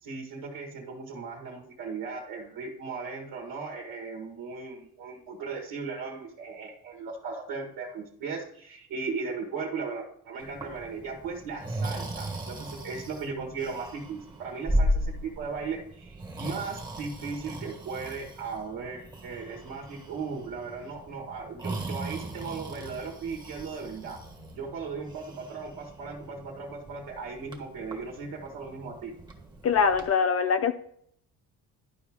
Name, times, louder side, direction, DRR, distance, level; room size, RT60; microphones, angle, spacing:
voice 1, 0.0-24.2 24.6-29.1, right 4 dB, 70° right, -1 dB, 1.6 m, -37 dB
Breathing, 10.4-30.1, equal, 10° right, 1.3 m, -37 dB
voice 2, 29.6-30.7, left 6 dB, 45° left, 8 dB, 0.5 m, -23 dB
11.5 x 4.6 x 3.6 m, 0.68 s
cardioid pair, 105°, 34 cm